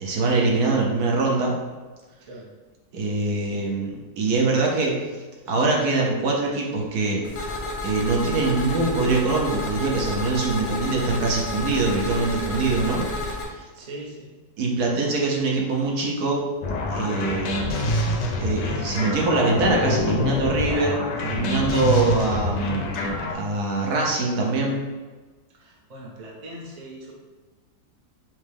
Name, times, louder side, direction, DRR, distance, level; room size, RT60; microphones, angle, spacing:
voice 1, 0.0-1.5 2.9-5.0 5.5-7.2 7.8-13.0 13.5-13.6 14.6-16.4 16.9-17.6 18.4-24.8, right 3 dB, 70° right, -1 dB, 1.3 m, -23 dB
voice 2, 2.2-2.5 3.4-3.7 13.7-14.3 25.6-27.1, right 1 dB, 40° right, -3 dB, 0.6 m, -41 dB
sound 1, 7.2-13.5, left 2 dB, 50° left, 0.8 m, -30 dB
sound 2, 16.6-23.3, left 2 dB, 85° left, 1.3 m, -26 dB
6.0 x 2.2 x 3.4 m, 1.3 s
omnidirectional pair, 1.8 m